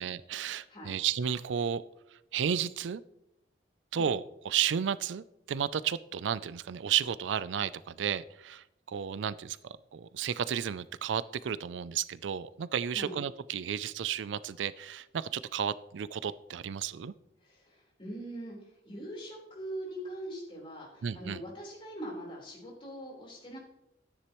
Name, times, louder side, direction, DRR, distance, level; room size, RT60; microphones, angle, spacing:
voice 1, 0.0-1.8 2.3-3.0 3.9-9.6 9.9-17.1 21.0-21.4, right 8 dB, 85° right, 17 dB, 0.4 m, -33 dB
voice 2, 17.4-23.6, right 1 dB, 30° left, -3 dB, 4.0 m, -42 dB
13.0 x 9.9 x 3.1 m, 0.83 s
head